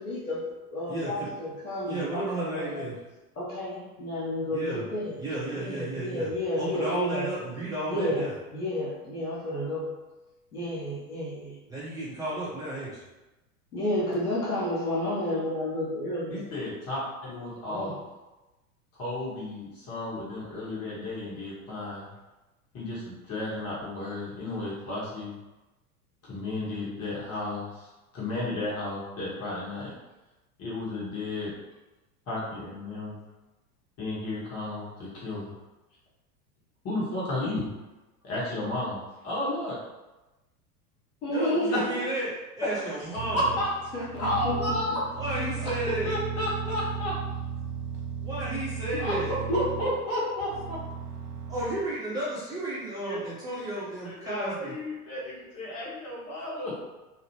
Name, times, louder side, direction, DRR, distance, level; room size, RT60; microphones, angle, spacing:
voice 1, 0.0-2.9 3.4-5.2 5.5-7.3 7.9-9.9 10.5-11.6 13.7-16.4 17.7-18.0 41.2-42.0 43.9-45.0 48.9-49.0 49.5-50.3, left 1 dB, 75° left, -5 dB, 1.1 m, -31 dB
voice 2, 0.9-1.3 1.9-3.0 4.5-4.8 5.2-6.3 6.6-8.3 11.7-13.0 41.3-43.5 43.9-44.0 45.2-46.1 48.2-49.3 51.3-54.8, right 1 dB, 10° right, -10 dB, 0.4 m, -33 dB
voice 3, 16.3-17.9 18.9-22.1 22.7-25.3 26.2-29.9 30.6-31.5 32.3-33.2 34.0-35.6 36.8-37.7 38.2-39.8 41.7-41.8 43.3-43.7 44.2-45.0 45.6-47.1 49.0-49.2 49.5-50.8 53.0-53.2 54.0-56.8, left 1 dB, 35° left, -7 dB, 1.4 m, -33 dB
sound 1, 43.2-51.9, right 6 dB, 50° right, 0.6 m, -35 dB
2.9 x 2.5 x 2.9 m, 1.1 s
figure-of-eight pair, 85°, 45 cm